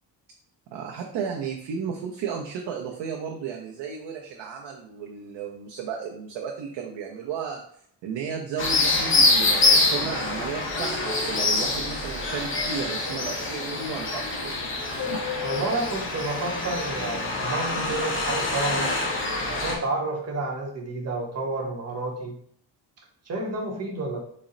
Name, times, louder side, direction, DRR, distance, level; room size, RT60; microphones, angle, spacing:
voice 1, 0.7-7.6 8.0-14.5 14.9-15.2, right 6 dB, 85° right, 0 dB, 0.6 m, -34 dB
sound 1, 8.6-19.8, left 3 dB, 30° left, 0.6 m, -25 dB
voice 2, 15.4-18.9 19.4-22.4 23.3-24.2, right 2 dB, 35° right, 0 dB, 0.7 m, -30 dB
4.1 x 2.1 x 3.7 m, 0.64 s
cardioid pair, 180°, 43 cm